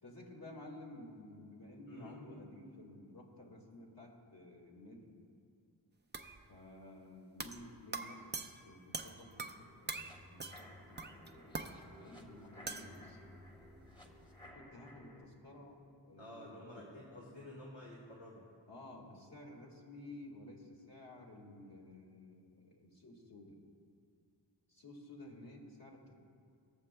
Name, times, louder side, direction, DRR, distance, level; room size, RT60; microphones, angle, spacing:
voice 1, 0.0-5.1 6.5-13.2 14.4-16.9 18.7-23.6 24.7-26.1, left 1 dB, 50° left, -2 dB, 2.0 m, -53 dB
voice 2, 1.9-2.2 16.2-18.4, left 1 dB, 75° left, -5 dB, 1.5 m, -51 dB
sound 1, 6.1-6.4 7.4-7.7 7.9-9.6 9.9-10.1 10.4-10.7 11.0-11.8 12.7-13.0, right 3 dB, 25° right, 0.5 m, -43 dB
sound 2, 8.9-15.3, left 1 dB, 10° left, 1.3 m, -57 dB
20.0 x 7.0 x 2.2 m, 2.3 s
cardioid pair, 45°, 46 cm